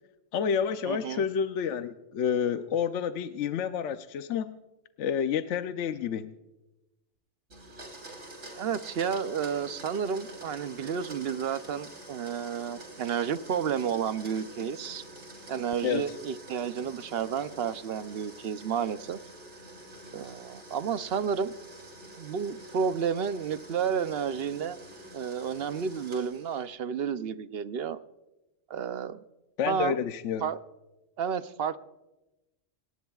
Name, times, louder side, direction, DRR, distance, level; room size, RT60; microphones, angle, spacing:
voice 1, 0.3-4.5 5.0-6.3 15.8-16.0 29.6-30.5, left 7 dB, 70° left, 9 dB, 0.9 m, -29 dB
voice 2, 0.9-1.3 8.6-15.0 15.5-19.2 20.1-21.5 22.2-24.8 25.1-28.0 28.7-29.2 29.7-30.0 30.4-30.6 31.2-31.8, right 7 dB, 60° right, 12 dB, 0.8 m, -31 dB
Domestic sounds home sounds, 7.5-26.7, right 1 dB, 75° right, 4.0 m, -47 dB
28.0 x 18.5 x 2.4 m, 1.0 s
omnidirectional pair, 1.3 m